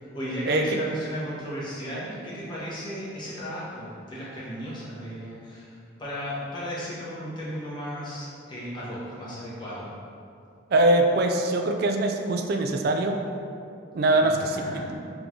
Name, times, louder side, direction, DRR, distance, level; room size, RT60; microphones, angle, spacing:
voice 1, 0.0-9.9 14.2-14.9, equal, 25° left, -8 dB, 1.0 m, -35 dB
voice 2, 10.7-13.2 13.9-14.9, right 2 dB, 50° right, 5 dB, 0.3 m, -22 dB
3.8 x 3.0 x 3.7 m, 2.5 s
head